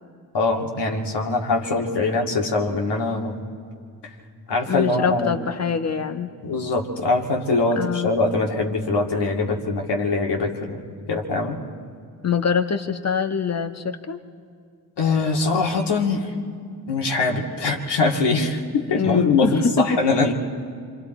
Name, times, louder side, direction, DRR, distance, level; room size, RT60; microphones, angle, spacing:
voice 1, 0.3-3.4 4.5-5.4 6.4-10.8 11.1-11.6 15.0-16.3 16.9-20.3, left 3 dB, 60° left, 0 dB, 2.4 m, -22 dB
voice 2, 4.7-6.3 7.7-8.1 12.2-14.2 18.9-20.0, left 6 dB, 35° left, 7 dB, 1.4 m, -24 dB
26.5 x 25.5 x 4.5 m, 2.1 s
hypercardioid pair, 40°, 46 cm